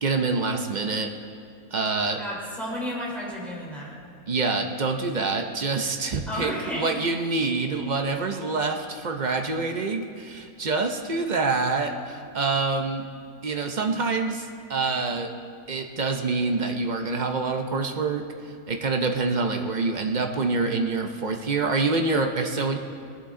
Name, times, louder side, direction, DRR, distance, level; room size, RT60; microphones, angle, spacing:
voice 1, 0.0-1.1 1.7-2.2 4.3-13.1 13.4-15.3 15.7-22.8, right 3 dB, 45° right, 4 dB, 0.6 m, -26 dB
voice 2, 2.2-3.9 6.3-7.0, equal, ahead, -5 dB, 3.4 m, -32 dB
19.0 x 11.0 x 3.7 m, 2.3 s
omnidirectional pair, 1.7 m